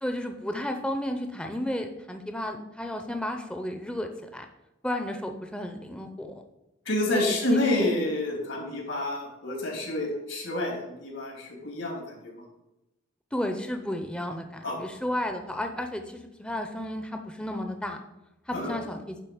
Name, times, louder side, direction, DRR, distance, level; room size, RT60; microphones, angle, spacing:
voice 1, 0.0-4.5 4.8-6.4 7.1-7.6 13.3-18.0 18.5-19.2, left 1 dB, 5° left, 5 dB, 0.6 m, -32 dB
voice 2, 6.8-12.4 14.6-14.8 18.5-18.7, left 1 dB, 80° left, 0 dB, 3.0 m, -29 dB
10.5 x 3.8 x 7.0 m, 0.93 s
head